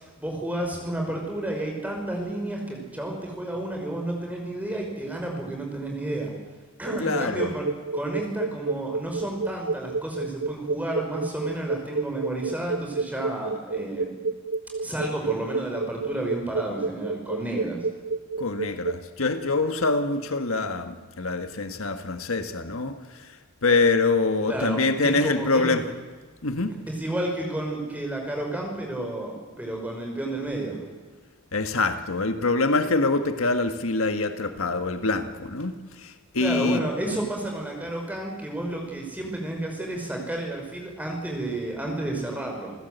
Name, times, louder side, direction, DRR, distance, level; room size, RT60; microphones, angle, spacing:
voice 1, 0.0-6.3 6.8-7.7 7.9-14.2 14.8-17.8 24.5-25.8 26.9-30.9 36.4-42.7, right 1 dB, 5° right, 5.3 m, -31 dB
sound 1, 6.8-19.0, right 3 dB, 70° right, 0.8 m, -29 dB
voice 2, 7.0-7.5 18.4-25.9 26.4-26.8 31.5-36.8, left 3 dB, 75° left, 1.5 m, -25 dB
28.5 x 15.5 x 8.1 m
head